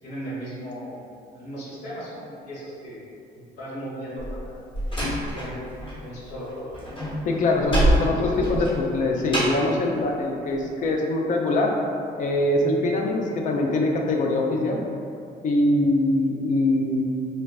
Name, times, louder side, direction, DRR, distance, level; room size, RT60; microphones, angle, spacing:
voice 1, 0.0-1.0 1.3-3.0 3.3-4.5 5.0-5.7 6.0-6.7 8.1-8.6, equal, 85° left, -8 dB, 1.2 m, -37 dB
Slam, 4.2-6.0 6.3-9.7, right 1 dB, 30° left, 1.1 m, -26 dB
voice 2, 7.3-11.7 12.2-14.8 15.4-17.1, left 2 dB, 50° left, 1 dB, 0.5 m, -23 dB
4.2 x 2.2 x 2.3 m, 2.4 s
cardioid pair, 110°, 17 cm